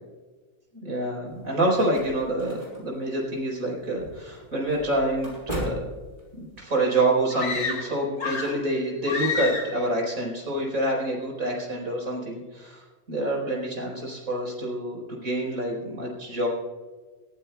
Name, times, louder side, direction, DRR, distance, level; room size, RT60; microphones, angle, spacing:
voice 1, 0.8-5.8 6.3-16.5, right 1 dB, 60° right, -2 dB, 5.0 m, -27 dB
sound 1, 1.3-6.6, equal, 25° right, 5.4 m, -39 dB
sound 2, 7.3-8.7 9.1-9.9, left 4 dB, 60° left, 2.0 m, -30 dB
21.5 x 15.5 x 2.3 m, 1.3 s
omnidirectional pair, 1.6 m